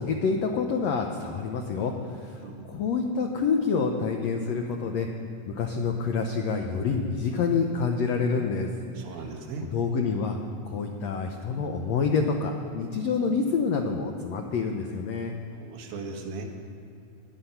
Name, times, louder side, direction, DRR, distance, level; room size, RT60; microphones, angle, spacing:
voice 1, 0.0-2.4 2.7-5.1 5.5-8.7 9.6-10.4 10.6-15.3, left 5 dB, 85° left, 3 dB, 1.5 m, -27 dB
voice 2, 9.0-9.7 15.5-16.4, right 4 dB, 80° right, 2 dB, 3.1 m, -38 dB
18.0 x 11.0 x 5.7 m, 2.6 s
omnidirectional pair, 4.2 m